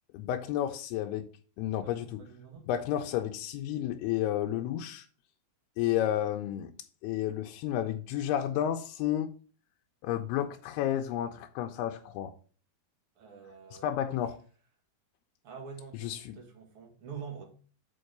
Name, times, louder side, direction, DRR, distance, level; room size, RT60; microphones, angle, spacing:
voice 1, 0.1-1.3 1.6-2.2 2.7-5.1 5.8-6.7 7.0-9.3 10.0-12.3 13.8-14.4 15.9-16.4, left 11 dB, 90° left, 2.6 m, -31 dB
voice 2, 1.8-2.6 13.2-13.9 15.4-17.4, right 6 dB, 50° right, 1.9 m, -46 dB
6.3 x 4.9 x 6.6 m
omnidirectional pair, 4.5 m